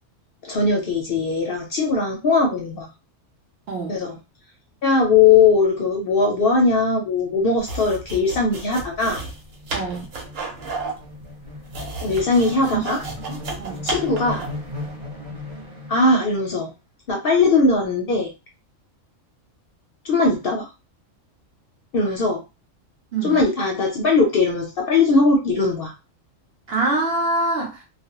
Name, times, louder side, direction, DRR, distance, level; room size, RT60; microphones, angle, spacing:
voice 1, 0.4-2.9 3.9-4.2 4.8-9.2 12.0-13.0 13.8-14.4 15.9-16.7 17.1-18.3 20.0-20.7 21.9-22.4 23.2-25.9, left 4 dB, 60° left, 1 dB, 0.6 m, -19 dB
voice 2, 3.7-4.0 9.7-10.1 13.3-13.8 23.1-23.4 26.7-27.8, right 2 dB, 60° right, 0 dB, 0.8 m, -25 dB
sound 1, 5.5-5.8 6.1-6.3 6.5-16.2, left 1 dB, 35° right, 0.5 m, -38 dB
sound 2, 7.6-14.6, right 3 dB, 75° right, 1.1 m, -32 dB
2.3 x 2.0 x 2.9 m, 0.28 s
omnidirectional pair, 1.3 m